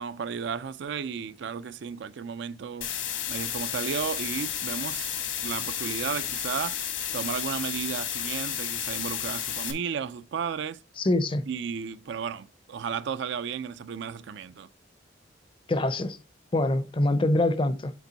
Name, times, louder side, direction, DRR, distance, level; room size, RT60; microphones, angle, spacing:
voice 1, 0.0-2.9 3.3-5.1 5.4-10.8 11.5-14.7, right 6 dB, 65° right, 0.4 m, -34 dB
sound 1, 2.8-9.7, left 9 dB, 70° left, 1.3 m, -32 dB
voice 2, 11.0-11.5 15.7-16.2 16.5-17.9, left 1 dB, 30° left, 0.6 m, -24 dB
7.0 x 4.5 x 4.0 m
head